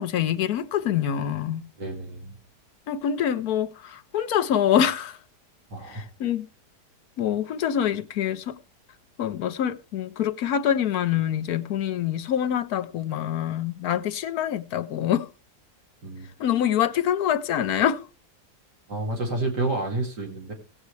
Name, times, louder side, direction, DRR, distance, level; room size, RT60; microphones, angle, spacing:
voice 1, 0.0-1.6 2.9-5.2 5.8-6.5 7.2-8.6 9.2-15.3 16.4-18.1, left 9 dB, 70° left, 1.2 m, -25 dB
voice 2, 1.8-2.4 5.7-6.1 16.0-16.3 18.9-20.5, right 2 dB, 85° right, 2.9 m, -30 dB
17.5 x 8.2 x 3.2 m
omnidirectional pair, 1.7 m